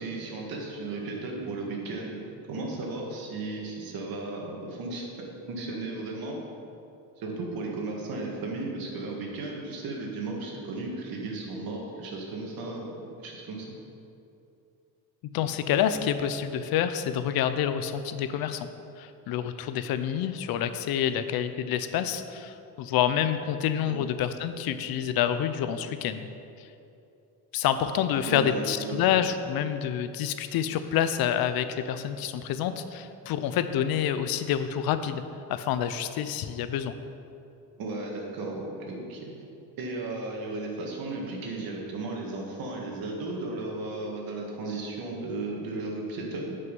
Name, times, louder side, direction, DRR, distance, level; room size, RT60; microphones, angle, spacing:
voice 1, 0.0-2.2 2.5-5.1 5.5-6.4 7.2-13.7 23.9-24.0 28.3-29.3 37.8-39.3 39.8-46.6, right 2 dB, 60° right, -1 dB, 1.9 m, -35 dB
voice 2, 15.3-18.7 19.0-26.3 27.5-35.2 35.5-36.9, left 9 dB, 60° left, 11 dB, 0.6 m, -28 dB
9.5 x 5.6 x 5.4 m, 2.7 s
cardioid pair, 130°, 40 cm